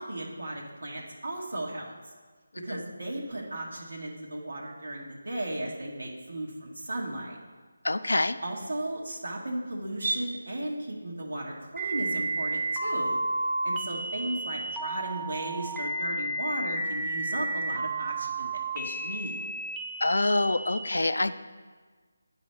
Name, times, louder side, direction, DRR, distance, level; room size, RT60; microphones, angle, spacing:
voice 1, 0.0-1.9 2.6-7.4 8.4-13.2 13.6-19.4, right 1 dB, 75° right, -2 dB, 1.3 m, -35 dB
voice 2, 7.8-8.4 20.0-21.3, left 2 dB, 80° left, 12 dB, 0.4 m, -26 dB
sound 1, 11.8-20.8, right 2 dB, 5° right, 0.5 m, -32 dB
9.4 x 4.9 x 3.2 m, 1.5 s
figure-of-eight pair, 160°, 0 cm